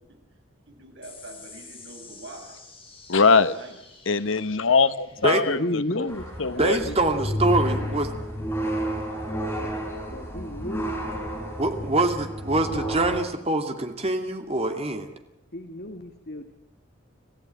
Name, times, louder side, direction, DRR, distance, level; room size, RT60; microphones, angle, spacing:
voice 1, 0.7-2.6 3.5-3.8, right 2 dB, 60° right, 2 dB, 6.5 m, -44 dB
sound 1, 1.0-7.8, left 4 dB, 30° left, 7.5 m, -50 dB
voice 2, 3.1-3.5 4.1-6.1 6.4-6.9, left 4 dB, 80° left, 13 dB, 1.1 m, -22 dB
voice 3, 5.3-8.1 9.6-9.7 10.1-11.0 15.5-16.5, left 1 dB, 50° left, 6 dB, 1.7 m, -33 dB
sound 2, 6.1-13.2, equal, 10° left, 5.9 m, -31 dB
voice 4, 6.6-8.1 11.6-15.1, right 2 dB, 30° right, 6 dB, 2.4 m, -24 dB
27.0 x 15.0 x 9.2 m, 0.92 s
head